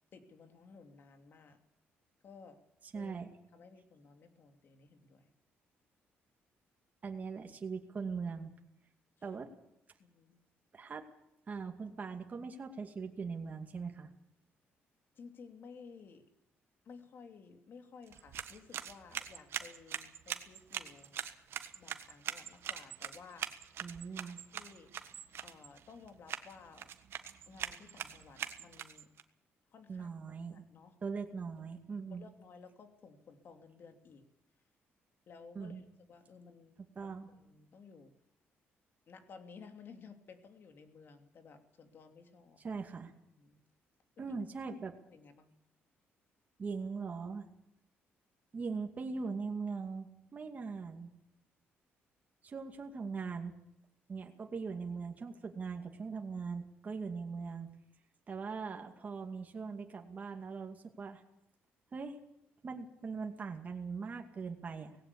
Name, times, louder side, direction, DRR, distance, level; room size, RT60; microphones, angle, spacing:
voice 1, 0.1-1.6 2.2-2.6 2.9-3.1 3.5-5.3 10.0-10.4 15.2-16.3 16.8-21.2 21.8-23.7 24.2-24.9 25.4-26.9 27.5-29.1 29.7-30.1 30.5-30.9 32.1-34.3 35.3-35.8 36.1-38.1 39.1-42.6 43.3-43.6 44.2-44.4 45.1-45.5, left 5 dB, 55° left, 6 dB, 2.9 m, -55 dB
voice 2, 2.9-3.3 7.0-8.5 9.2-9.5 10.7-11.0 11.5-14.1 23.8-24.4 29.9-30.6 31.0-32.2 35.5-35.8 37.0-37.3 42.6-43.1 44.2-44.9 46.6-47.5 48.5-51.1 52.4-53.5 54.1-57.7 58.3-61.2 61.9-62.2 62.6-65.0, right 5 dB, 35° right, 3 dB, 2.4 m, -41 dB
sound 1, 18.0-29.2, right 9 dB, 65° right, 1.5 m, -43 dB
18.5 x 17.0 x 8.4 m, 0.82 s
cardioid pair, 105°, 4 cm